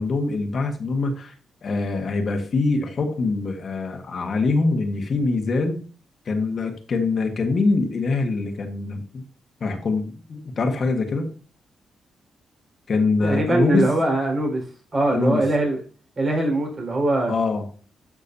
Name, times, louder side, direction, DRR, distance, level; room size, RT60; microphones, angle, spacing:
voice 1, 0.0-1.3 1.6-5.8 6.2-9.2 9.6-11.3 12.9-13.8 15.1-15.4 17.3-17.7, left 3 dB, 50° left, 5 dB, 1.4 m, -24 dB
voice 2, 13.2-14.6 14.9-15.8 16.2-17.3, right 2 dB, 40° right, 0 dB, 4.6 m, -22 dB
12.0 x 6.3 x 2.7 m, 0.39 s
cardioid pair, 105°, 0 cm